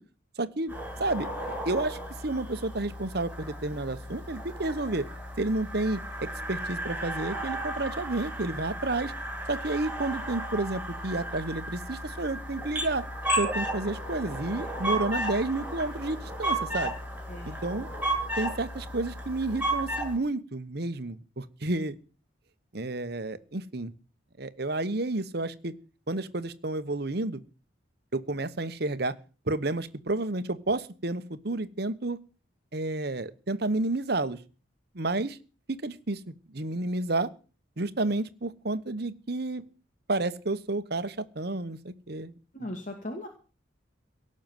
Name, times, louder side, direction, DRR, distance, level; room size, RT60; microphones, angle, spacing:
voice 1, 0.4-0.7 1.0-1.3 1.6-5.1 5.4-9.1 9.5-13.0 13.4-16.9 17.6-17.9 18.4-22.0 22.7-23.9 24.4-25.7 26.1-27.4 28.1-29.2 29.5-32.2 32.7-34.4 34.9-35.4 35.7-37.3 37.8-39.6 40.1-42.7, right 2 dB, 55° right, 14 dB, 1.1 m, -31 dB
sound 1, 0.7-20.1, right 1 dB, 10° right, 7.4 m, -34 dB
voice 2, 17.3-17.6 42.5-43.3, left 1 dB, 40° left, 3 dB, 2.4 m, -38 dB
17.5 x 6.6 x 9.2 m, 0.37 s
head